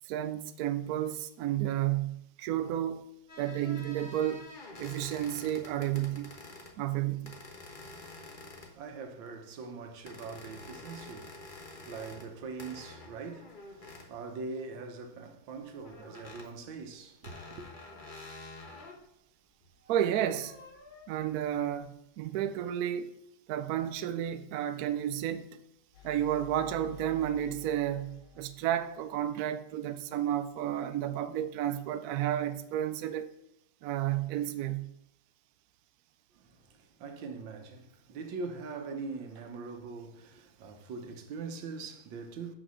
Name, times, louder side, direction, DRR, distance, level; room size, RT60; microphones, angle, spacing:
voice 1, 0.0-3.0 3.4-4.5 4.8-6.3 6.8-7.3 19.9-20.6 21.1-23.1 23.5-25.5 26.0-33.3 33.8-34.9, right 11 dB, 85° right, 0.8 m, -32 dB
sound 1, 3.3-6.8 7.3-8.9 10.1-12.3 12.6-14.1 15.8-16.5 17.2-19.0 19.6-21.1, left 2 dB, 30° left, 1.1 m, -48 dB
voice 2, 7.9-17.7 36.3-42.5, right 4 dB, 70° right, 1.6 m, -43 dB
sound 2, 25.9-29.7, left 11 dB, 75° left, 2.1 m, -53 dB
6.3 x 6.1 x 6.2 m
omnidirectional pair, 2.3 m